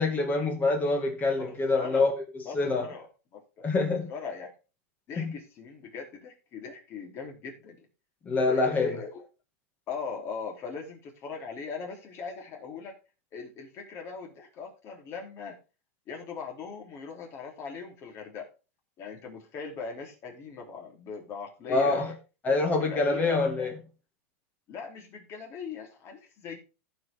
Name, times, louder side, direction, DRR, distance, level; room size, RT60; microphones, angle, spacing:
voice 1, 0.0-2.9 3.6-4.1 5.2-5.3 8.3-9.0 21.7-22.1 22.4-23.7, left 3 dB, 20° left, 2.0 m, -26 dB
voice 2, 1.4-2.1 2.4-3.1 3.3-3.6 4.1-4.5 5.1-7.8 8.4-9.3 9.9-13.0 13.3-15.6 16.1-18.5 19.0-22.1 22.8-23.4 24.7-26.6, left 5 dB, 35° left, 3.3 m, -40 dB
15.5 x 5.2 x 3.6 m
supercardioid pair, 135°, 8 cm